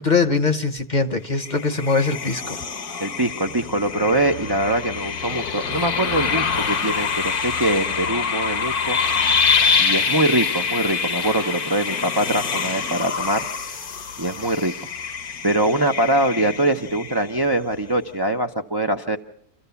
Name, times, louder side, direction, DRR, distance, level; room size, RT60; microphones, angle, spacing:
voice 1, 0.0-2.6, left 4 dB, 35° left, 9 dB, 0.9 m, -22 dB
sound 1, 1.3-17.6, left 6 dB, 75° left, 1.7 m, -25 dB
voice 2, 3.0-9.0 9.8-13.4 14.2-14.7 15.4-19.2, right 1 dB, 30° right, 4 dB, 0.4 m, -23 dB
27.0 x 14.5 x 6.9 m, 0.71 s
omnidirectional pair, 1.6 m